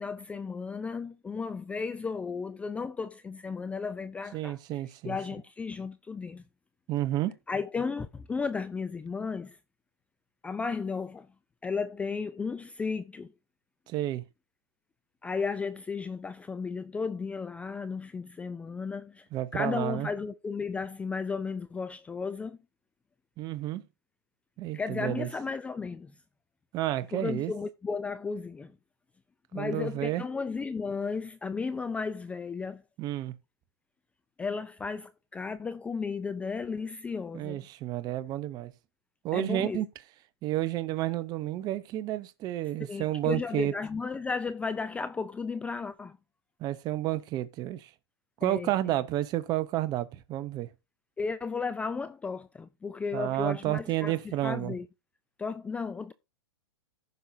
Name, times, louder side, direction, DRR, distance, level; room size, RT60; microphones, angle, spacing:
voice 1, 0.0-4.6 5.0-6.4 7.5-9.6 10.4-11.3 11.6-13.3 15.2-22.6 24.7-26.1 27.1-28.7 29.5-32.8 34.4-37.7 39.3-39.8 42.8-46.2 48.4-48.7 51.2-54.9 55.4-56.1, left 5 dB, 10° left, 0.4 m, -34 dB
voice 2, 4.3-5.2 6.9-7.3 13.9-14.2 19.3-20.1 23.4-23.8 24.6-25.3 26.7-27.5 29.5-30.2 33.0-33.3 37.3-38.7 39.2-39.9 40.4-43.7 46.6-47.9 48.4-50.7 53.1-54.7, right 14 dB, 30° right, 0.8 m, -31 dB
15.0 x 5.5 x 2.7 m
hypercardioid pair, 130°, 13 cm